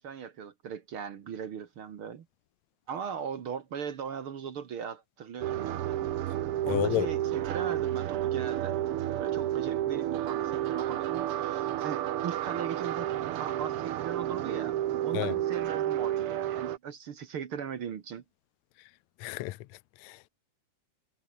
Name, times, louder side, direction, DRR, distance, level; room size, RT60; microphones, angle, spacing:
voice 1, 0.0-2.3 2.9-6.0 6.6-8.8 9.2-13.1 13.4-18.2, right 7 dB, 50° right, 1.7 m, -39 dB
sound 1, 5.4-16.8, right 12 dB, 85° right, 1.2 m, -31 dB
voice 2, 6.7-7.1 15.1-15.3 19.2-19.6 20.0-20.3, left 16 dB, 75° left, 1.8 m, -30 dB
omnidirectional pair, 3.9 m